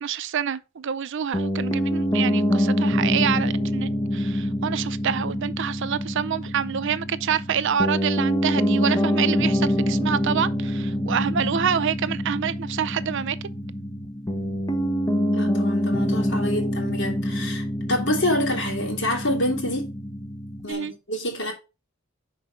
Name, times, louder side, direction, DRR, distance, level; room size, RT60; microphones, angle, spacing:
voice 1, 0.0-13.4 20.7-20.9, right 8 dB, 60° right, 0.5 m, -27 dB
Piano, 1.3-20.7, equal, 20° left, 0.9 m, -25 dB
voice 2, 15.3-19.9 20.6-21.5, left 1 dB, 60° left, 2.9 m, -27 dB
5.6 x 4.6 x 6.1 m
head